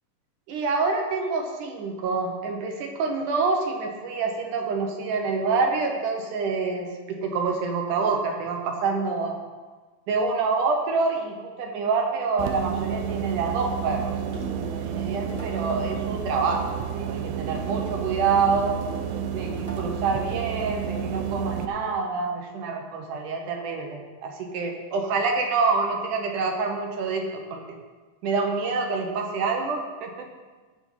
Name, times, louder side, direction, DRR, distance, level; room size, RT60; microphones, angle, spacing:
voice 1, 0.5-9.4 10.1-14.1 14.7-18.8 19.3-27.2 27.5-27.8 28.2-30.1, right 4 dB, 65° right, 2 dB, 2.3 m, -27 dB
sound 1, 12.4-21.7, right 8 dB, 80° right, 1.8 m, -30 dB
low conga dry, 14.3-15.7 17.5-19.9, equal, 20° right, 0.8 m, -41 dB
14.5 x 7.9 x 3.9 m, 1.3 s
omnidirectional pair, 4.4 m